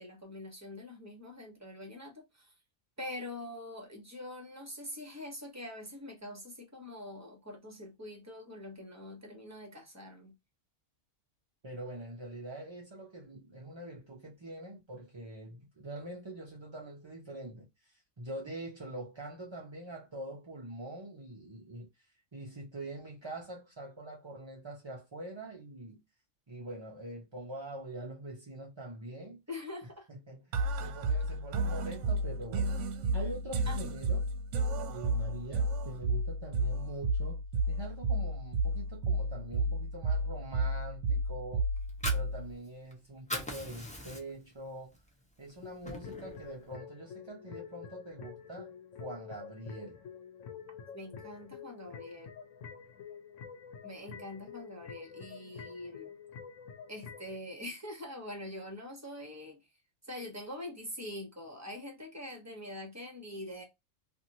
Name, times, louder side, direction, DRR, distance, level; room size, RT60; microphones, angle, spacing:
voice 1, 0.0-2.5 3.0-10.3 29.5-30.1 33.7-33.8 50.9-52.4 53.8-56.2 56.9-59.6 60.0-63.6, left 1 dB, 15° right, 0.9 m, -44 dB
voice 2, 11.6-22.1 22.3-26.0 26.5-29.4 30.1-32.8 33.1-34.3 34.9-37.4 37.7-41.7 42.1-45.0 45.4-48.7 49.0-50.0, right 1 dB, 35° right, 0.5 m, -44 dB
sound 1, 30.5-42.5, right 2 dB, 70° right, 0.9 m, -32 dB
Fire, 41.8-42.9 43.2-44.5 44.9-45.1 45.5-46.4, left 1 dB, 5° left, 0.6 m, -39 dB
sound 2, 45.6-57.4, left 7 dB, 85° left, 1.0 m, -48 dB
2.8 x 2.6 x 2.6 m
omnidirectional pair, 1.3 m